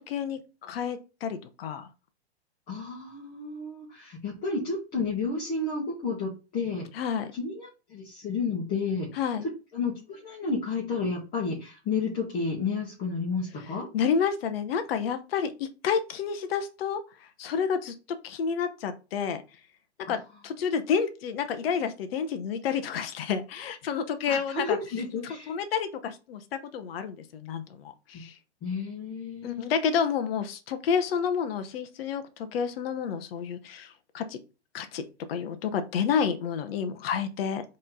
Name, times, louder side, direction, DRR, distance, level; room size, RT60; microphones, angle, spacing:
voice 1, 0.0-1.9 6.9-7.3 9.2-9.4 13.9-19.4 20.1-24.8 25.5-28.4 29.4-34.4 34.7-37.6, left 7 dB, 60° left, 9 dB, 0.8 m, -30 dB
voice 2, 2.7-6.9 7.3-9.3 9.7-13.9 20.1-20.2 24.3-25.6 28.1-28.2 28.6-29.7, left 4 dB, 25° left, -4 dB, 1.5 m, -31 dB
4.2 x 3.2 x 3.9 m, 0.31 s
hypercardioid pair, 120°, 34 cm